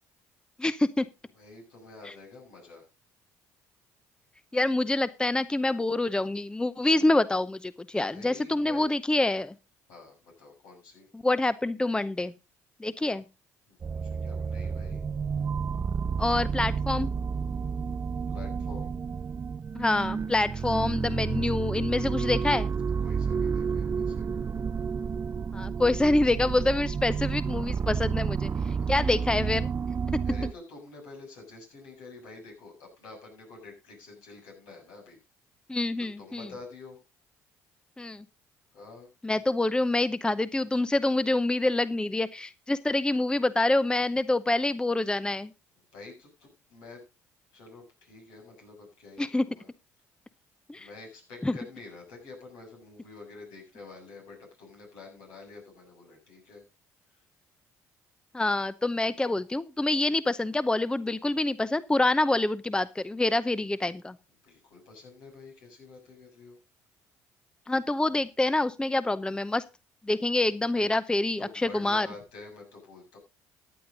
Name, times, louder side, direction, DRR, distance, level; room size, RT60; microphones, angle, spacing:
voice 1, 0.6-1.0 4.5-9.5 11.2-12.3 12.8-13.2 16.2-17.1 19.7-22.7 25.5-28.5 28.9-29.7 35.7-36.5 38.0-38.2 39.2-45.5 49.2-49.4 50.7-50.9 51.4-51.5 58.3-64.1 67.7-69.6 70.1-72.1, left 2 dB, 10° left, 15 dB, 0.7 m, -26 dB
voice 2, 1.3-2.8 8.1-8.9 9.9-11.1 13.0-13.1 13.7-15.0 18.3-18.9 21.0-21.5 23.0-24.3 28.8-29.2 30.2-35.2 36.0-37.0 38.7-39.1 45.9-47.0 47.5-49.7 50.8-56.6 64.4-66.6 70.7-70.9 71.4-73.2, left 3 dB, 75° left, 1 dB, 7.4 m, -48 dB
sound 1, 13.8-30.5, right 6 dB, 35° right, 0.6 m, -30 dB
15.0 x 9.7 x 3.9 m, 0.29 s
hypercardioid pair, 65°, 7 cm